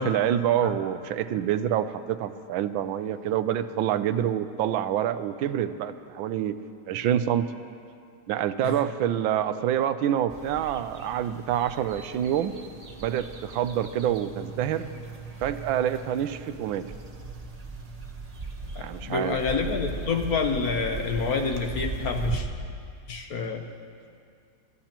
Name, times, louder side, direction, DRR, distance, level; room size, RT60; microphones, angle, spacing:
voice 1, 0.0-6.6 6.9-7.5 8.3-12.5 13.0-14.9 15.4-16.8 18.8-19.4, right 10 dB, 85° right, 11 dB, 1.4 m, -27 dB
sound 1, 10.3-22.4, right 3 dB, 55° right, 0.4 m, -38 dB
voice 2, 18.8-22.5 23.1-23.6, left 4 dB, 55° left, 4 dB, 1.2 m, -28 dB
28.0 x 14.0 x 3.0 m, 2.3 s
omnidirectional pair, 2.1 m